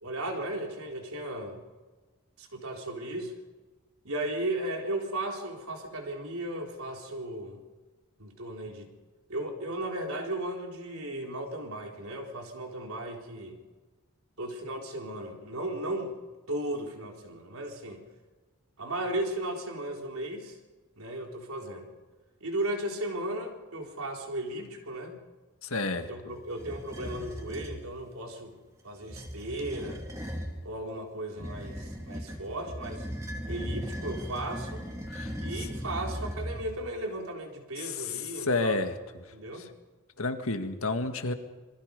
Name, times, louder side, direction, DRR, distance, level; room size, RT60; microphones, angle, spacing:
voice 1, 0.0-1.6 2.4-3.3 4.0-7.6 8.2-8.9 9.3-13.6 14.4-16.2 16.5-18.0 18.8-20.6 21.0-21.9 22.4-25.2 26.1-28.6 28.8-30.0 30.6-33.1 33.5-34.9 35.4-38.8 39.3-39.7, right 1 dB, 80° right, 2 dB, 3.9 m, -35 dB
voice 2, 25.6-26.3 35.1-35.3 37.8-39.0 39.6-39.7 40.2-41.3, left 3 dB, 75° left, 7 dB, 1.9 m, -31 dB
sound 1, 26.5-27.8 29.0-30.6 31.4-36.9, equal, 15° right, 2.6 m, -38 dB
26.5 x 23.5 x 5.4 m, 1.3 s
head